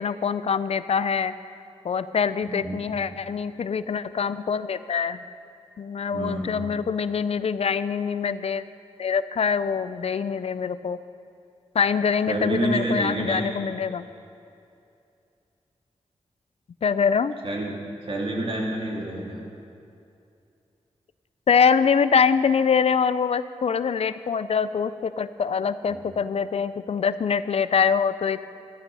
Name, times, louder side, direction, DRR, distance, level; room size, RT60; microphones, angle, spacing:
voice 1, 0.0-1.3 1.8-5.2 5.8-8.7 9.0-11.0 11.7-14.1 16.8-17.3 21.5-28.5, left 6 dB, 60° left, 14 dB, 0.4 m, -24 dB
voice 2, 2.4-2.9 6.1-6.6 12.3-13.5 17.4-17.7 18.0-19.4 25.9-26.0, right 1 dB, 50° right, -2 dB, 2.9 m, -28 dB
14.0 x 12.5 x 5.5 m, 2.6 s
wide cardioid pair, 85°, 12 cm